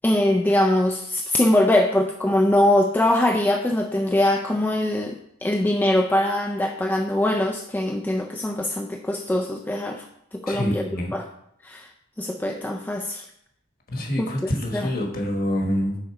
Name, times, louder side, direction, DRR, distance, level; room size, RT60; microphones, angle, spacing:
voice 1, 0.0-10.0 10.3-11.3 11.6-11.9 12.2-13.2 14.2-14.3 14.7-14.9, left 1 dB, 10° left, 2 dB, 0.3 m, -22 dB
voice 2, 10.5-11.1 13.9-16.0, equal, 45° left, 1 dB, 1.2 m, -26 dB
6.4 x 3.9 x 4.7 m, 0.72 s
head